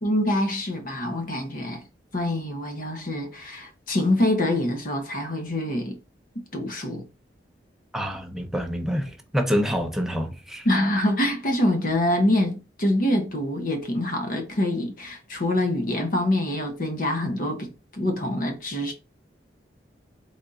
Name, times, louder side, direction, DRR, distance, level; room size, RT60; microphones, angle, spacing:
voice 1, 0.0-1.8 2.1-6.0 6.5-7.1 10.6-18.9, left 1 dB, 50° left, 0.9 m, -25 dB
voice 2, 7.9-10.6, equal, ahead, 0.7 m, -27 dB
4.0 x 3.5 x 3.7 m
head